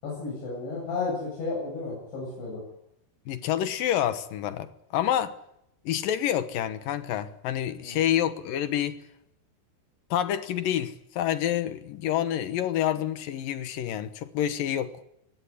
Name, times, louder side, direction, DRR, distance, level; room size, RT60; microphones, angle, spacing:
voice 1, 0.0-2.6 7.8-8.0, left 3 dB, 80° left, 10.5 m, -33 dB
voice 2, 3.3-5.3 5.9-9.0 10.1-14.9, left 11 dB, 65° left, 2.4 m, -28 dB
22.0 x 16.5 x 9.9 m
omnidirectional pair, 5.1 m